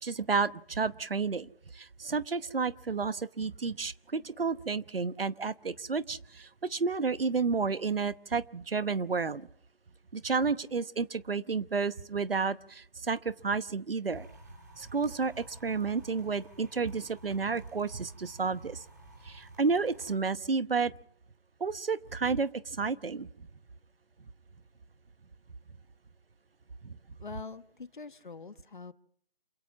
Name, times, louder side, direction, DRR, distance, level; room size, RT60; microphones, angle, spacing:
voice 1, 0.0-1.5 1.7-9.5 10.1-14.3 14.8-18.8 19.2-20.9 21.6-23.3 26.8-26.9, right 4 dB, 75° right, 16 dB, 1.0 m, -31 dB
sound 1, 14.1-20.2, right 2 dB, 20° right, 3.0 m, -53 dB
voice 2, 27.2-28.9, left 4 dB, 55° left, 14 dB, 1.2 m, -44 dB
27.5 x 17.0 x 6.1 m, 0.63 s
figure-of-eight pair, 170°, 29 cm